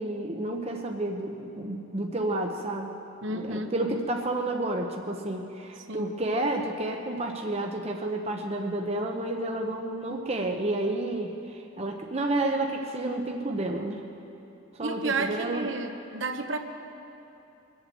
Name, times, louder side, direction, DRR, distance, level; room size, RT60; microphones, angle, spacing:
voice 1, 0.0-2.9 3.3-14.0 14.8-15.7, right 2 dB, 30° right, 2 dB, 0.8 m, -30 dB
voice 2, 3.2-3.7 5.9-6.1 14.8-16.6, right 3 dB, 60° right, 5 dB, 1.0 m, -31 dB
23.0 x 8.1 x 7.6 m, 2.9 s
head